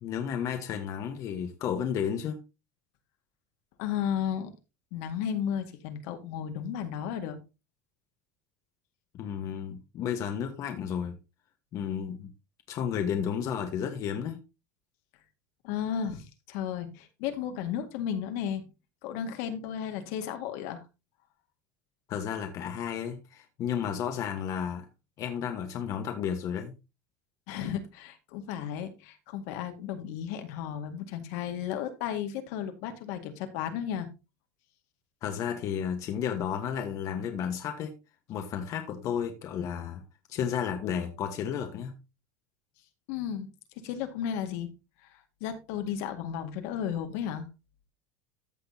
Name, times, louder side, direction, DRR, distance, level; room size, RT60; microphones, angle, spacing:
voice 1, 0.0-2.4 9.1-11.2 11.7-12.3 12.7-14.4 22.1-24.9 25.2-26.7 35.2-37.9 38.3-40.0 40.3-42.0, left 8 dB, 40° left, 1.3 m, -32 dB
voice 2, 3.8-4.5 4.9-7.4 15.6-18.6 19.0-20.8 27.5-34.1 43.1-43.5 43.8-44.7 45.1-47.5, left 9 dB, 65° left, 2.0 m, -34 dB
14.0 x 6.3 x 2.8 m
cardioid pair, 160°, 9 cm